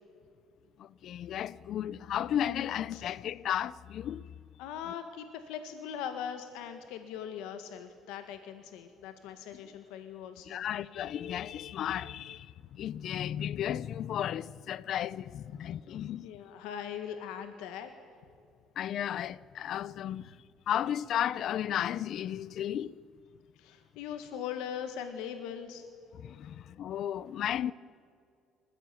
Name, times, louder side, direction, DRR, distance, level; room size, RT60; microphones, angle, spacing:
voice 1, 0.8-4.3 10.5-16.3 18.8-20.4 20.7-22.9 26.1-27.7, left 10 dB, 50° left, 0.5 m, -34 dB
voice 2, 4.6-10.7 16.2-17.9 23.6-25.8, left 8 dB, 90° left, 1.7 m, -40 dB
28.0 x 15.5 x 9.2 m
cardioid pair, 145°, 0 cm